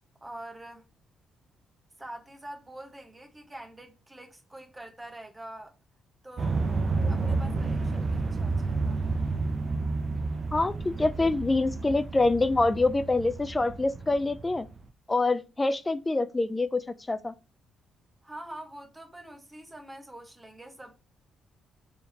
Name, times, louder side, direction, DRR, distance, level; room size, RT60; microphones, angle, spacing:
voice 1, 0.2-0.8 2.0-5.7 6.2-6.6 7.1-9.0 18.2-20.9, right 1 dB, 15° right, 1.2 m, -45 dB
sound 1, 6.4-14.8, right 3 dB, 40° right, 0.6 m, -30 dB
voice 2, 10.5-14.7 15.1-17.3, left 2 dB, 20° left, 0.3 m, -26 dB
4.3 x 3.6 x 2.8 m
cardioid pair, 90°, 0 cm